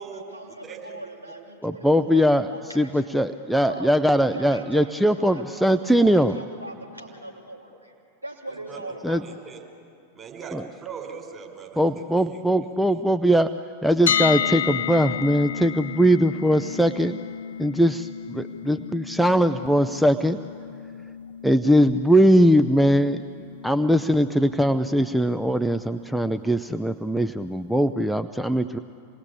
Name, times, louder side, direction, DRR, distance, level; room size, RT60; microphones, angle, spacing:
voice 1, 0.0-3.1 3.6-4.0 4.3-7.9 8.2-9.2, right 1 dB, 85° right, 0 dB, 2.9 m, -40 dB
voice 2, 1.6-2.5 2.8-6.3 9.0-9.2 11.8-13.5 13.8-17.2 17.6-20.4 21.4-23.2 23.6-28.8, equal, ahead, 9 dB, 0.6 m, -20 dB
voice 3, 9.2-9.6 10.1-12.4, right 6 dB, 20° right, -1 dB, 5.5 m, -40 dB
sound 1, 14.1-26.0, left 9 dB, 65° left, 0.6 m, -32 dB
27.0 x 20.0 x 8.6 m, 2.4 s
figure-of-eight pair, 90°, 0 cm